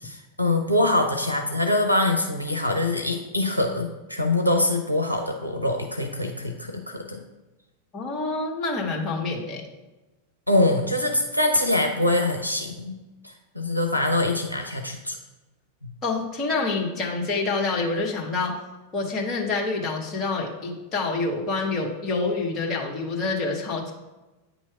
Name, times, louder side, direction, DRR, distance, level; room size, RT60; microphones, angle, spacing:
voice 1, 0.0-7.2 10.5-13.0 13.2-15.2 15.8-15.9, left 1 dB, 90° left, 5 dB, 0.6 m, -24 dB
voice 2, 7.9-9.6 16.0-18.5 18.9-23.9, left 3 dB, 30° left, -1 dB, 1.3 m, -27 dB
8.8 x 3.0 x 4.7 m, 1.1 s
figure-of-eight pair, 90°, 0 cm